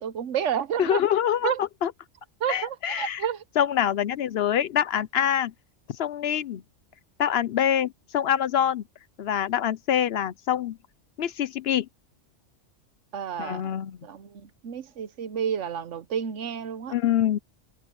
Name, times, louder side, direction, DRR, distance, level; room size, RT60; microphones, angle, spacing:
voice 1, 0.0-1.0 1.4-1.6 2.4-3.4 13.1-13.6 14.0-16.9, right 8 dB, 85° right, 1.2 m, -30 dB
voice 2, 0.8-1.5 1.8-1.9 2.5-3.2 3.6-5.5 6.0-6.6 7.2-8.8 9.2-10.8 11.2-11.9 13.4-14.0 16.9-17.4, left 10 dB, 65° left, 0.8 m, -25 dB
omnidirectional pair, 1.2 m